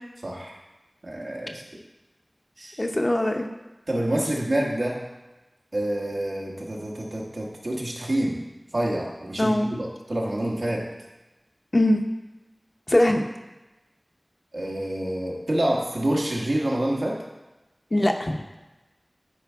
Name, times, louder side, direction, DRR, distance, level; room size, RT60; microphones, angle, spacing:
voice 1, 0.2-0.6 1.0-1.6 2.6-2.8 3.9-5.0 5.7-8.4 8.7-10.9 14.5-17.2, right 1 dB, 85° right, -2 dB, 1.2 m, -27 dB
voice 2, 2.8-3.5 9.4-9.7 11.7-12.0 12.9-13.2 17.9-18.4, left 1 dB, 50° left, 3 dB, 0.7 m, -21 dB
9.2 x 4.3 x 3.6 m, 1.1 s
wide cardioid pair, 45°, 0 cm